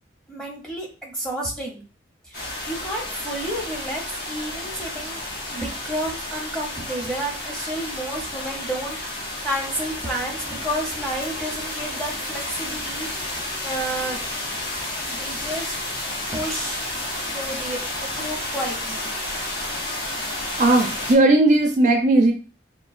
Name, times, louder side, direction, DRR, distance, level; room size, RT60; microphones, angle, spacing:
voice 1, 0.3-1.8 2.2-5.2 5.5-14.2 15.1-15.7 16.3-16.9 17.3-17.8 18.1-19.1, right 1 dB, 5° left, -3 dB, 0.7 m, -31 dB
sound 1, 2.3-21.1, left 1 dB, 55° left, 0.8 m, -31 dB
voice 2, 20.2-22.3, right 2 dB, 40° right, 3 dB, 0.4 m, -17 dB
3.7 x 2.2 x 2.4 m, 0.35 s
head